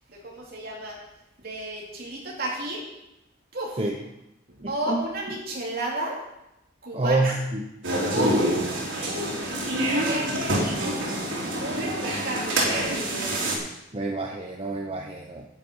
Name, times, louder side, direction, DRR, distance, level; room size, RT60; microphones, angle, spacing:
voice 1, 0.1-1.0 1.4-2.8 3.5-3.8 4.5-6.2 6.8-7.4 8.1-8.4 9.0-9.3 10.1-11.0 11.6-12.7, right 1 dB, 55° right, -2 dB, 3.4 m, -32 dB
voice 2, 4.6-5.0 6.9-7.6 8.1-8.5 13.9-15.5, right 2 dB, 30° right, 1 dB, 1.0 m, -27 dB
sound 1, 7.8-13.6, right 1 dB, 80° right, 3.7 m, -26 dB
11.0 x 9.5 x 5.6 m, 0.89 s
head